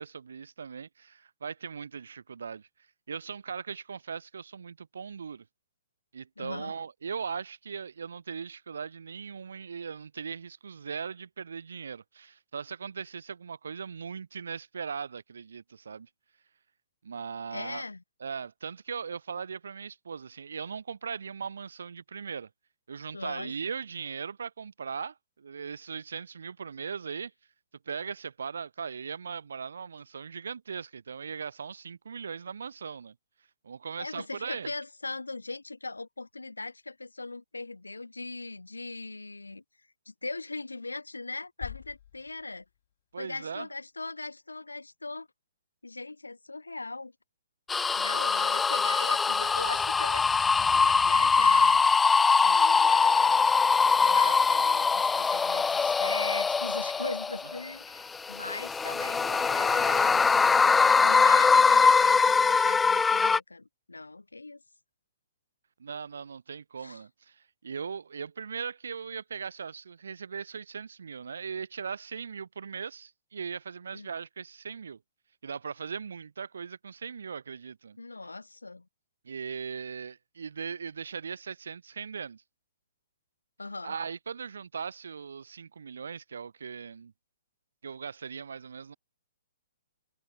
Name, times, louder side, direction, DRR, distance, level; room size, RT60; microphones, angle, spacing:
voice 1, 0.0-2.7 3.1-5.5 6.1-16.1 17.0-17.8 18.2-22.5 22.9-27.3 27.8-33.1 33.6-34.7 43.1-43.7 65.8-75.0 75.4-78.0 79.2-82.4 83.8-87.1 87.8-89.0, right 6 dB, 65° right, 6.6 m, -39 dB
voice 2, 6.4-6.7 17.5-18.0 23.1-23.6 34.0-39.6 40.1-42.6 43.2-45.3 45.8-47.1 48.0-51.8 52.4-53.5 54.0-60.3 60.8-64.6 66.8-67.0 73.9-74.1 78.0-78.9 83.6-83.9, left 3 dB, 85° left, 5.5 m, -39 dB
sound 1, 41.6-43.7, left 11 dB, 50° left, 5.9 m, -46 dB
A Haunted Place, 47.7-57.6 58.1-63.4, left 5 dB, 10° left, 0.4 m, -23 dB
figure-of-eight pair, 120°, 0 cm